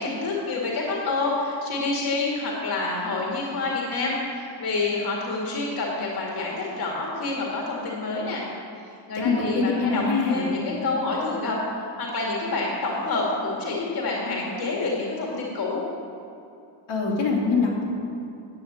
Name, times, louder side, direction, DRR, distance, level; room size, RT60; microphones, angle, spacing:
voice 1, 0.0-8.4 8.8-15.8, left 3 dB, 55° left, -3 dB, 2.2 m, -28 dB
voice 2, 9.1-10.5 16.9-17.8, left 4 dB, 85° left, -4 dB, 3.0 m, -23 dB
10.5 x 8.9 x 7.4 m, 2.6 s
wide cardioid pair, 175°, 44 cm